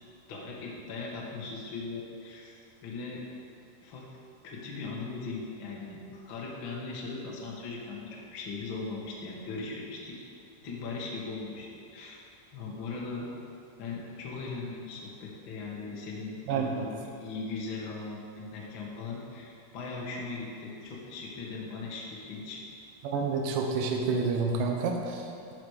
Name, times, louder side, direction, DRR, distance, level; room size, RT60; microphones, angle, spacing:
voice 1, 0.3-2.6 2.8-3.2 3.8-4.1 4.4-10.2 10.6-12.2 12.5-13.3 13.8-22.6, left 3 dB, 80° left, -4 dB, 1.1 m, -39 dB
voice 2, 16.5-16.9 23.0-25.5, right 4 dB, 70° right, 2 dB, 2.2 m, -29 dB
12.5 x 6.0 x 5.0 m, 2.6 s
omnidirectional pair, 4.9 m